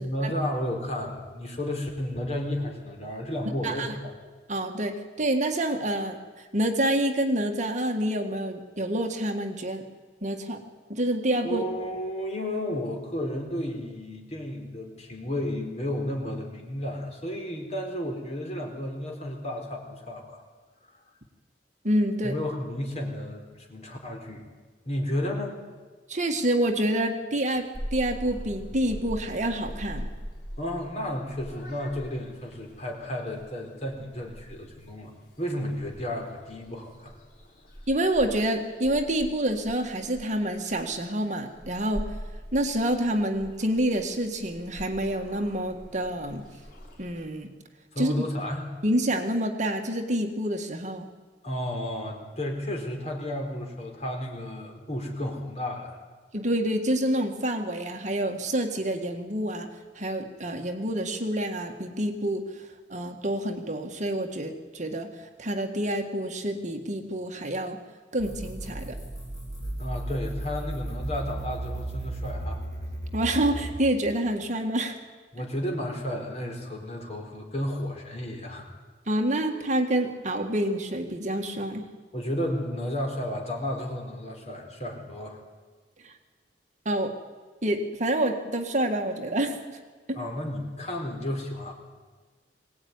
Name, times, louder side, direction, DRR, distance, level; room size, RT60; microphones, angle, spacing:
voice 1, 0.0-4.1 11.4-20.4 22.2-24.5 24.8-25.6 30.6-35.1 35.4-37.2 47.9-48.7 51.4-56.0 69.8-72.6 75.3-78.7 82.1-85.4 90.2-91.7, left 1 dB, 40° left, 1 dB, 4.2 m, -32 dB
voice 2, 3.6-3.9 4.5-9.8 10.2-10.6 10.9-11.6 21.8-22.4 26.1-30.1 37.9-42.1 42.5-46.4 47.0-47.5 48.0-48.2 48.8-51.1 56.3-59.7 60.0-65.1 65.4-67.8 68.1-69.0 73.1-75.0 79.1-81.8 86.0-86.1 86.9-87.1 87.6-89.8 90.1-90.2, right 1 dB, 45° right, 4 dB, 1.9 m, -27 dB
Purr / Meow, 27.7-47.2, equal, 55° left, 4.6 m, -43 dB
sound 1, 68.2-73.8, right 1 dB, 20° left, 7.7 m, -35 dB
22.0 x 18.0 x 9.7 m, 1.4 s
head